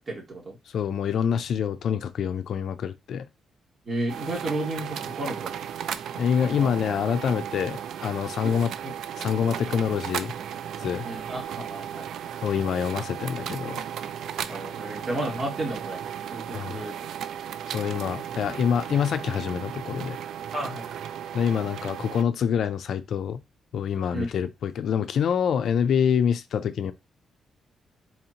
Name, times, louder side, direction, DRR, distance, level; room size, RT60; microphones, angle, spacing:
voice 1, 0.0-0.6 3.9-5.5 6.4-6.7 8.4-8.5 11.0-12.1 14.4-16.0 16.3-16.9 20.5-21.0 24.1-24.3, right 1 dB, 40° right, 2.0 m, -32 dB
voice 2, 0.7-3.3 6.1-8.7 9.2-10.3 10.8-11.1 12.4-13.8 16.5-16.8 17.7-20.2 21.3-23.4 23.7-26.9, left 7 dB, 70° left, 0.4 m, -26 dB
sound 1, 4.1-22.2, right 9 dB, 80° right, 0.3 m, -35 dB
4.2 x 2.7 x 2.8 m
cardioid pair, 85°, 0 cm